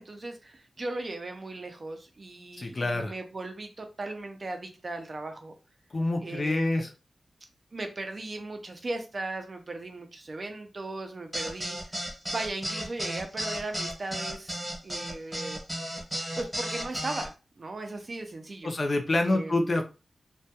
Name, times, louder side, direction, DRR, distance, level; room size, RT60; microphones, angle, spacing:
voice 1, 0.0-5.5 6.2-6.9 7.7-11.9 12.3-15.6 16.4-18.7 19.2-19.8, right 2 dB, 40° right, 5 dB, 0.4 m, -37 dB
voice 2, 2.6-3.1 5.9-6.9 18.6-19.8, left 2 dB, 35° left, 4 dB, 0.4 m, -27 dB
sound 1, 11.3-17.3, equal, 15° right, 0.9 m, -34 dB
2.2 x 2.2 x 2.7 m, 0.31 s
wide cardioid pair, 120°, 0 cm